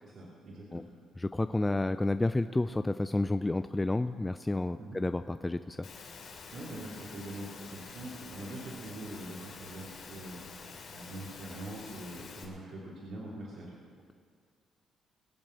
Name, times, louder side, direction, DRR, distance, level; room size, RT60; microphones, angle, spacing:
voice 1, 0.0-0.9 4.8-5.0 6.5-13.8, right 1 dB, 60° right, -5 dB, 3.2 m, -44 dB
voice 2, 1.2-5.9, left 2 dB, 15° left, 10 dB, 0.4 m, -30 dB
Engine / Mechanisms, 5.8-12.4, left 4 dB, 65° left, 3.1 m, -47 dB
22.0 x 7.5 x 6.7 m, 2.1 s
cardioid pair, 90°, 0 cm